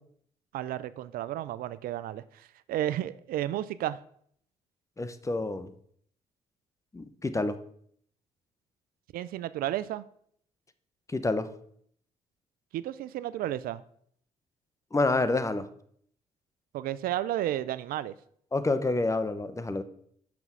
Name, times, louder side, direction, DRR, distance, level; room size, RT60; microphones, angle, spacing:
voice 1, 0.5-4.0 9.1-10.0 12.7-13.8 16.7-18.1, right 13 dB, 70° right, 17 dB, 0.4 m, -32 dB
voice 2, 5.0-5.7 6.9-7.6 11.1-11.5 14.9-15.7 18.5-19.8, left 2 dB, 20° left, 11 dB, 0.8 m, -28 dB
6.0 x 5.9 x 5.5 m, 0.64 s
supercardioid pair, 60°, 16 cm